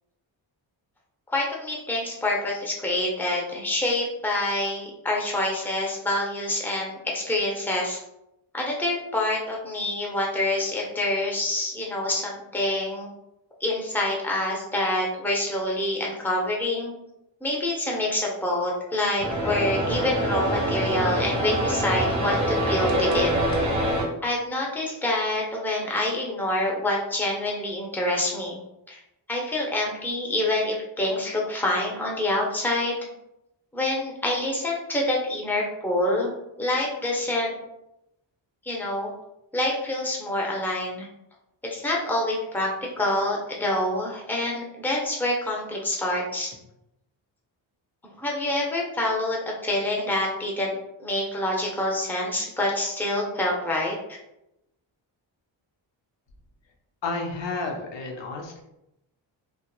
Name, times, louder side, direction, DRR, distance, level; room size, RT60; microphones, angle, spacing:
voice 1, 1.3-8.0 8.5-13.1 13.6-16.9 17.4-23.3 24.2-28.6 28.9-29.0 29.3-33.0 33.7-36.3 36.6-37.6 38.6-39.1 39.5-41.1 41.6-46.6 48.2-50.7 51.0-54.2, left 1 dB, 5° left, -2 dB, 0.6 m, -26 dB
sound 1, 19.2-24.1, right 1 dB, 40° right, 0.8 m, -25 dB
voice 2, 57.0-58.6, left 3 dB, 65° left, 2 dB, 0.6 m, -31 dB
2.8 x 2.3 x 2.3 m, 0.86 s
cardioid pair, 70°, 47 cm